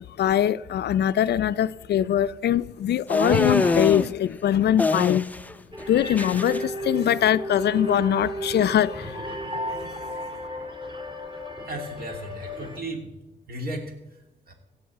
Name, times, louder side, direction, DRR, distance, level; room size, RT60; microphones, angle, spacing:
voice 1, 0.0-5.3 5.9-9.1, left 10 dB, 65° left, 0.5 m, -22 dB
sound 1, 3.1-4.1 4.8-5.5 5.8-6.6, left 2 dB, 10° left, 0.5 m, -24 dB
sound 2, 5.7-12.8, equal, 25° right, 2.9 m, -34 dB
voice 2, 11.7-13.1 13.5-13.9 14.5-14.6, right 1 dB, 55° right, 2.7 m, -34 dB
16.0 x 5.5 x 7.6 m
cardioid pair, 70°, 18 cm